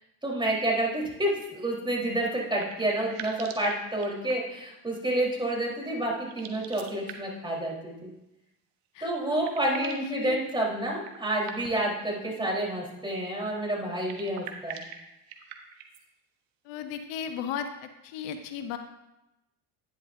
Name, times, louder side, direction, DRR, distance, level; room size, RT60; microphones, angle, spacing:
voice 1, 0.2-8.1 9.0-14.8, right 1 dB, 10° right, -2 dB, 3.8 m, -29 dB
sound 1, 2.1-4.6 6.2-7.5 8.8-8.9 9.2-10.1 11.0-12.0 13.9-16.0, right 8 dB, 80° right, 1.2 m, -44 dB
voice 2, 8.9-9.4 9.7-10.4 12.4-12.5 16.6-18.8, left 8 dB, 75° left, 7 dB, 0.9 m, -36 dB
10.5 x 10.0 x 2.6 m, 0.92 s
supercardioid pair, 75°, 44 cm